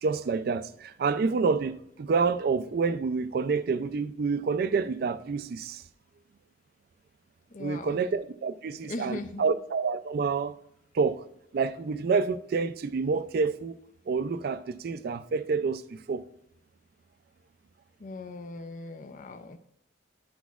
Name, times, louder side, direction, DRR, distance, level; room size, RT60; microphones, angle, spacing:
voice 1, 0.0-5.8 7.6-10.5 10.9-11.2 11.5-13.8 14.1-16.2, right 4 dB, 55° right, 0.3 m, -28 dB
voice 2, 7.5-8.0 8.9-9.5 18.0-19.6, left 2 dB, 45° left, 0.5 m, -39 dB
10.0 x 6.1 x 2.4 m
head